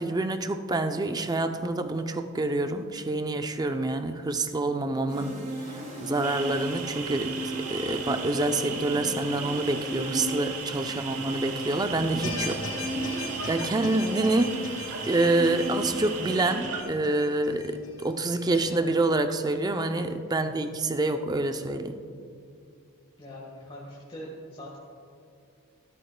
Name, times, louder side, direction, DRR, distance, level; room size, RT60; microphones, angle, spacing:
voice 1, 0.0-5.4 6.0-12.6 13.5-14.6 15.1-22.0, right 2 dB, 20° right, 8 dB, 0.4 m, -27 dB
sound 1, 5.1-16.9, equal, 35° right, 2.0 m, -36 dB
sound 2, 6.2-16.8, right 5 dB, 80° right, 1.0 m, -37 dB
voice 2, 10.9-11.2 20.2-20.5 23.2-24.8, equal, 25° left, -5 dB, 1.4 m, -43 dB
sound 3, 12.2-18.6, left 3 dB, 75° left, 2.3 m, -40 dB
13.0 x 13.0 x 2.2 m, 2.4 s
head